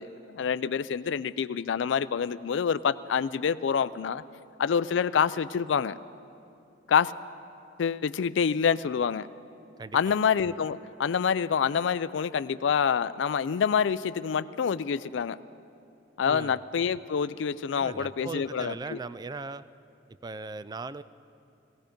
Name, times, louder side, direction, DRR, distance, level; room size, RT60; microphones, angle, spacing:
voice 1, 0.0-4.2 4.6-6.0 6.9-7.1 7.8-9.3 9.9-15.4 16.2-19.0, left 7 dB, 70° left, 16 dB, 0.4 m, -27 dB
voice 2, 16.2-16.6 17.7-19.6 20.2-21.0, right 3 dB, 20° right, 15 dB, 0.3 m, -38 dB
17.5 x 16.0 x 5.2 m, 2.6 s
head